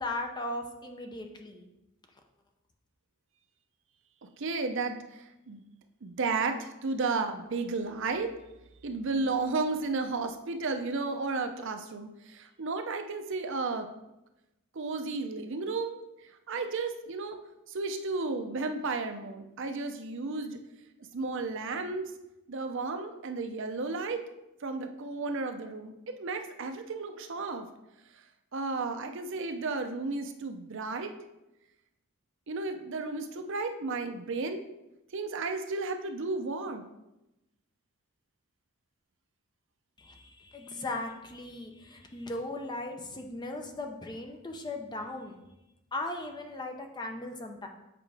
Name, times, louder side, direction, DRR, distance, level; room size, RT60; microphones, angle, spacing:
voice 1, 0.0-1.7 40.0-45.3 45.9-47.7, left 2 dB, 20° left, 4 dB, 0.6 m, -38 dB
voice 2, 4.4-5.6 6.0-8.3 8.8-13.9 14.7-16.0 16.5-17.4 17.7-20.6 21.1-22.1 22.5-24.2 24.6-25.9 26.2-27.7 28.5-31.2 32.5-34.6 35.1-36.8, right 3 dB, 55° right, 6 dB, 0.5 m, -33 dB
7.6 x 4.8 x 3.4 m, 0.93 s
head